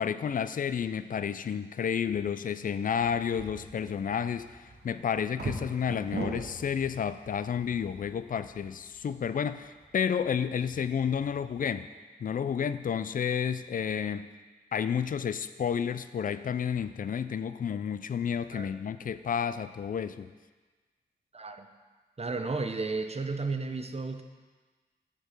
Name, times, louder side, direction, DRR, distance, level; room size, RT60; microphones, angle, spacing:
voice 1, 0.0-4.6 4.8-11.9 12.2-14.3 14.7-20.3, left 7 dB, 50° left, 13 dB, 0.4 m, -31 dB
sound 1, 3.0-11.6, right 2 dB, 75° right, 1.2 m, -43 dB
voice 2, 21.3-21.7 22.2-24.2, right 3 dB, 35° right, 7 dB, 0.7 m, -33 dB
7.4 x 4.5 x 6.6 m, 1.4 s
cardioid pair, 50°, 17 cm